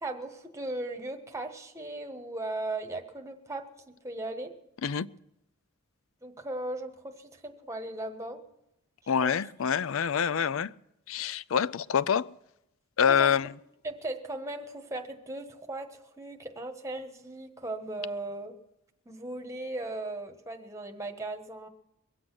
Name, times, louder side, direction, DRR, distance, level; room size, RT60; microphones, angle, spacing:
voice 1, 0.0-4.5 6.2-8.4 9.2-9.4 13.1-13.5 13.8-18.6 19.0-21.7, right 2 dB, 15° right, 1.3 m, -37 dB
voice 2, 9.1-10.7 11.1-12.3 13.0-13.5, left 7 dB, 65° left, 0.4 m, -26 dB
22.5 x 7.9 x 6.1 m
head